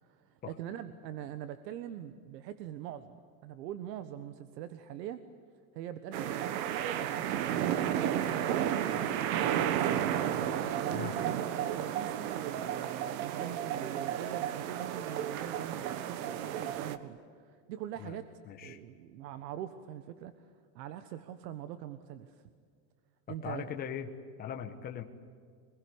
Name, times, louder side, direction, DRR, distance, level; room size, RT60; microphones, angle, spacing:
voice 1, 0.0-3.2 3.4-5.2 5.7-9.9 10.7-18.3 18.6-20.3 20.7-22.4 23.3-23.7, right 11 dB, 80° right, 11 dB, 1.5 m, -43 dB
sound 1, 6.1-17.0, right 10 dB, 60° right, 1.6 m, -32 dB
voice 2, 18.5-18.8 23.3-24.1 24.4-25.0, left 9 dB, 20° left, 4 dB, 1.3 m, -40 dB
26.0 x 21.5 x 9.7 m, 2.2 s
supercardioid pair, 165°, 49 cm